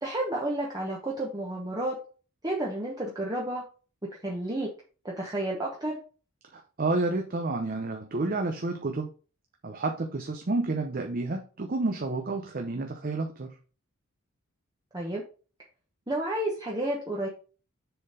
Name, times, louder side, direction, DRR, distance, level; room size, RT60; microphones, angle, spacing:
voice 1, 0.0-2.0 2.4-3.6 4.2-4.7 5.0-6.0 14.9-15.2 16.1-17.3, right 1 dB, 15° right, -3 dB, 1.0 m, -31 dB
voice 2, 6.5-9.1 9.6-13.6, right 2 dB, 40° right, 4 dB, 0.7 m, -30 dB
6.9 x 3.9 x 5.1 m, 0.37 s
head